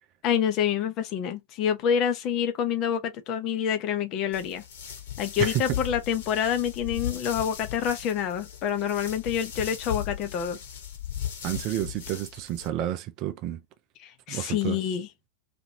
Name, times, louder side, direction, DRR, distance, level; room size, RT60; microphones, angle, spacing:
voice 1, 0.2-4.6 5.2-10.6 14.0-15.1, left 8 dB, 40° left, 0.7 m, -27 dB
sound 1, 4.3-12.7, left 10 dB, 55° left, 1.1 m, -37 dB
voice 2, 5.4-5.8 11.4-13.6 14.3-14.8, right 12 dB, 40° right, 0.5 m, -30 dB
2.9 x 2.5 x 2.6 m
figure-of-eight pair, 90°, 0 cm